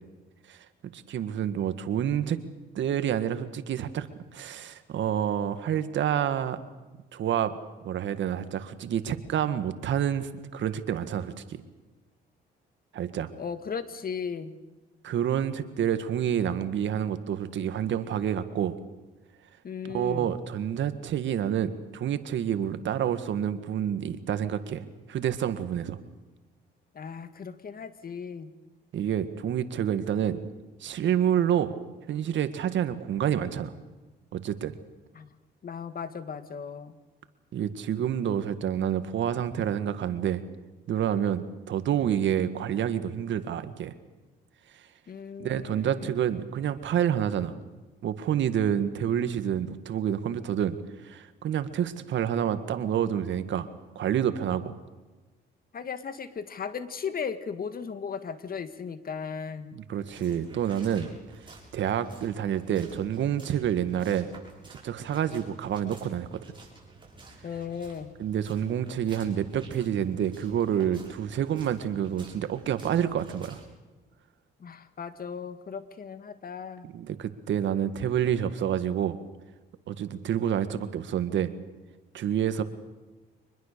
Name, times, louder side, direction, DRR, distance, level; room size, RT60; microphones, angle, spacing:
voice 1, 0.9-2.4 2.8-4.1 4.3-6.6 7.1-7.5 7.8-11.6 12.9-13.3 15.0-18.8 19.8-26.0 28.9-30.4 30.8-31.7 32.1-33.7 34.3-34.7 37.5-40.4 40.9-43.9 45.4-47.6 48.0-50.8 51.0-53.7 54.0-54.7 59.7-61.1 61.7-64.3 64.8-66.4 68.2-73.6 76.8-79.2 79.9-81.5 82.1-82.6, right 9 dB, 70° right, 11 dB, 1.7 m, -28 dB
voice 2, 13.4-14.6 19.6-20.3 26.9-28.5 35.2-35.3 35.6-37.0 45.1-46.1 55.7-59.8 67.4-68.2 74.6-76.9, left 6 dB, 50° left, 11 dB, 1.9 m, -36 dB
sound 1, 60.1-73.7, right 3 dB, 25° right, 7.8 m, -52 dB
25.5 x 21.0 x 6.8 m, 1.2 s
cardioid pair, 90°, 20 cm